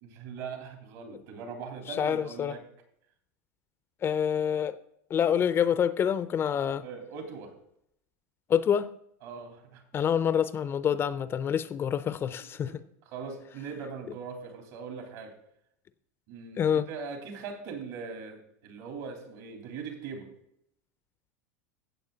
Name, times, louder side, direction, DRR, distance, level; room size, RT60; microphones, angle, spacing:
voice 1, 0.0-2.6 6.8-7.5 9.2-10.0 12.5-12.7 13.0-15.3 16.3-20.3, right 5 dB, 70° right, 3.4 m, -41 dB
voice 2, 1.9-2.6 4.0-4.8 5.1-6.8 8.5-8.9 9.9-12.7 16.6-16.9, left 8 dB, 30° left, 0.5 m, -27 dB
16.0 x 7.0 x 3.9 m
supercardioid pair, 125°, 8 cm